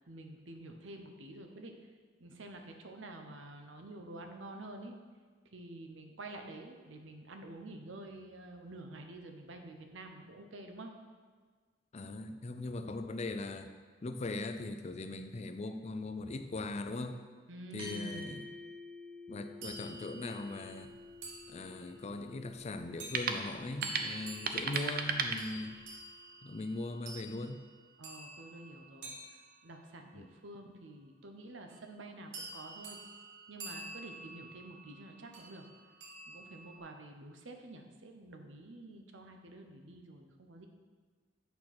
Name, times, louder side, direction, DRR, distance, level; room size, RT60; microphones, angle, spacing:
voice 1, 0.1-1.7 2.2-5.0 5.5-10.9 17.5-18.5 28.0-33.0 33.5-35.6 36.3-40.7, right 2 dB, 90° right, 4 dB, 0.9 m, -49 dB
voice 2, 11.9-13.7 14.0-17.2 17.7-18.3 19.3-20.9 21.5-25.8 26.4-27.6 30.1-30.3, left 2 dB, 35° left, 8 dB, 0.4 m, -40 dB
sound 1, 17.8-26.5, left 2 dB, 30° right, 1.6 m, -51 dB
sound 2, 19.6-22.1 23.0-23.3 23.8-30.2 31.7-32.0 32.3-36.8, right 2 dB, 70° right, 1.3 m, -49 dB
sound 3, 20.6-26.0, right 5 dB, 50° right, 0.6 m, -38 dB
8.5 x 4.5 x 6.0 m, 1.5 s
head